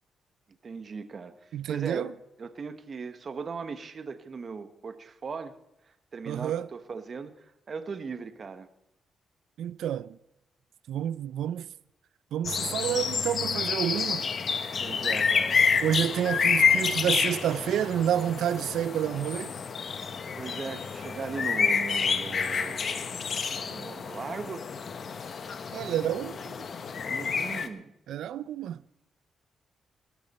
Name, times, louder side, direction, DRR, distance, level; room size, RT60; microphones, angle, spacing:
voice 1, 0.6-2.1 2.4-5.5 6.1-8.7 14.8-15.6 20.4-23.3 23.7-24.6 27.1-27.9, right 5 dB, 40° right, 1.2 m, -38 dB
voice 2, 1.5-2.1 6.3-6.7 9.6-10.2 10.9-11.7 12.3-14.3 15.8-19.5 25.7-26.6 28.1-28.8, right 10 dB, 85° right, 0.4 m, -29 dB
sound 1, 12.4-27.7, left 6 dB, 45° left, 1.0 m, -29 dB
20.0 x 12.5 x 4.3 m
cardioid pair, 135°, 0 cm